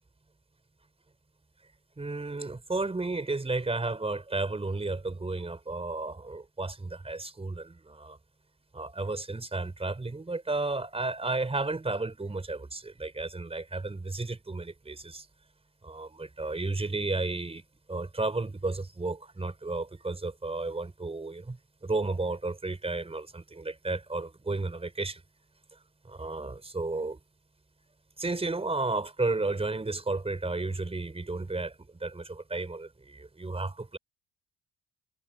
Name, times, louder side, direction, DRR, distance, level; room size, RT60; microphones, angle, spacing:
voice 1, 2.0-8.2 8.7-15.3 15.8-17.6 17.9-25.2 26.0-27.2 28.2-34.0, right 3 dB, 20° right, 4.3 m, -33 dB
cardioid pair, 90°, 30 cm